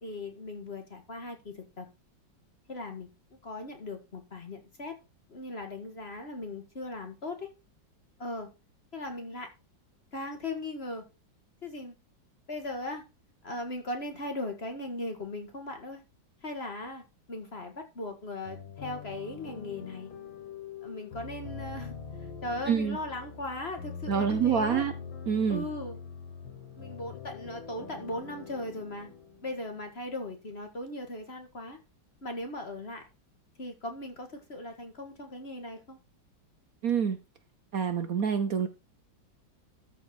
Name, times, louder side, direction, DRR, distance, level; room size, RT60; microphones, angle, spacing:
voice 1, 0.0-1.9 2.7-3.1 3.4-4.9 5.3-7.5 8.2-8.5 8.9-9.5 10.1-11.0 11.6-11.9 12.5-13.0 13.4-16.0 16.4-17.0 17.3-20.1 20.8-21.9 22.4-24.8 25.5-26.0 26.7-29.1 29.4-31.8 32.2-33.0 33.6-36.0, left 2 dB, 35° left, 1.8 m, -38 dB
sound 1, 18.5-30.2, left 6 dB, 85° left, 2.5 m, -43 dB
voice 2, 22.7-23.0 24.1-24.9 25.3-25.6 36.8-37.2 37.7-38.7, right 7 dB, 60° right, 1.1 m, -26 dB
13.5 x 4.5 x 4.8 m
omnidirectional pair, 2.1 m